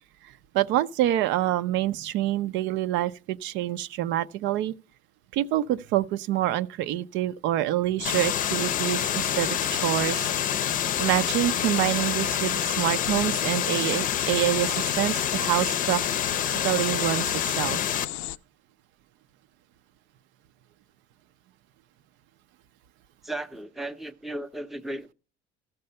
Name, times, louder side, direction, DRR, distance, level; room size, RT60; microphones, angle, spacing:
voice 1, 0.5-4.7 5.3-10.3 11.0-16.0 16.5-17.8, right 14 dB, 70° right, 0.5 m, -26 dB
sound 1, 8.0-18.4, left 15 dB, 90° left, 0.5 m, -35 dB
green noise, 8.0-18.0, left 9 dB, 45° left, 0.6 m, -27 dB
voice 2, 23.2-25.1, right 1 dB, ahead, 0.6 m, -35 dB
14.0 x 6.7 x 5.4 m
cardioid pair, 130°, 20 cm